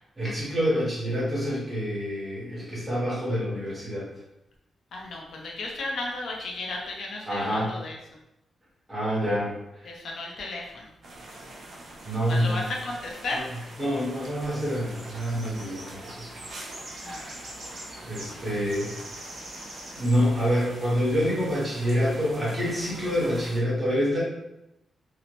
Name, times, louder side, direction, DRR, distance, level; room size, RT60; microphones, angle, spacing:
voice 1, 0.2-4.1 7.2-7.7 8.9-9.9 12.0-12.7 13.3-13.4 13.8-16.1 16.4-16.7 17.0-17.4 18.0-18.9 19.9-24.2, equal, 15° right, -8 dB, 1.2 m, -27 dB
voice 2, 4.9-8.0 9.8-10.9 12.3-13.5 17.0-17.3 18.2-18.4, left 2 dB, 70° left, -1 dB, 0.6 m, -34 dB
sound 1, 11.0-23.6, right 1 dB, 60° right, 0.5 m, -44 dB
sound 2, 12.8-23.4, right 1 dB, 75° right, 1.1 m, -47 dB
2.8 x 2.0 x 2.9 m, 0.88 s
wide cardioid pair, 145°, 0 cm